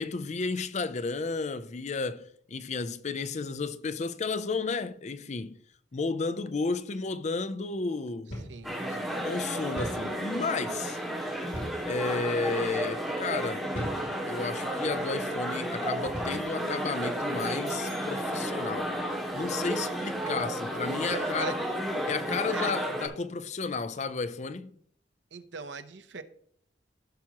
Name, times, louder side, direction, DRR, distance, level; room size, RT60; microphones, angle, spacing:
voice 1, 0.0-5.6 5.9-8.4 9.2-11.0 11.8-13.7 14.2-18.9 19.3-21.6 22.1-24.7, left 4 dB, 40° left, 0.5 m, -32 dB
sound 1, 8.3-8.6 8.9-9.0 9.8-10.1 11.5-11.9 12.6-12.8 13.7-14.1 14.8-15.0 16.1-16.4, equal, 80° left, 2.9 m, -38 dB
voice 2, 8.5-9.2 20.8-21.6 22.5-22.8 25.3-26.2, right 4 dB, 75° right, 0.8 m, -40 dB
sound 2, 8.6-23.1, right 1 dB, ahead, 2.0 m, -32 dB
15.0 x 5.9 x 2.9 m
head